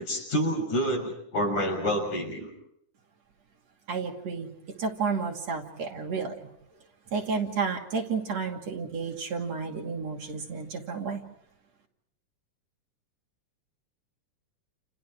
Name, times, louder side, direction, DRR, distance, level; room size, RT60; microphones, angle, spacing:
voice 1, 0.0-2.5, equal, 70° left, 1 dB, 8.2 m, -28 dB
voice 2, 3.9-4.5 4.8-6.5 7.1-11.2, right 5 dB, 60° right, 2 dB, 3.7 m, -31 dB
30.0 x 30.0 x 4.7 m, 0.73 s
omnidirectional pair, 3.6 m